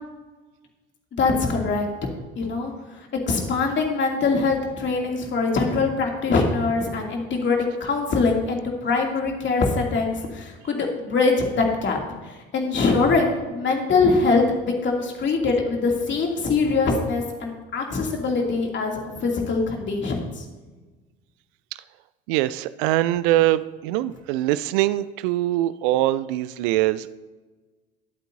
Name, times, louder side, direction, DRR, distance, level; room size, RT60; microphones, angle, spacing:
voice 1, 1.2-1.9 2.4-3.0 3.3-20.4, left 4 dB, 40° left, 1 dB, 2.7 m, -23 dB
voice 2, 22.3-27.2, right 15 dB, 60° right, 16 dB, 0.5 m, -23 dB
21.0 x 8.2 x 2.7 m, 1.3 s
figure-of-eight pair, 60°, 29 cm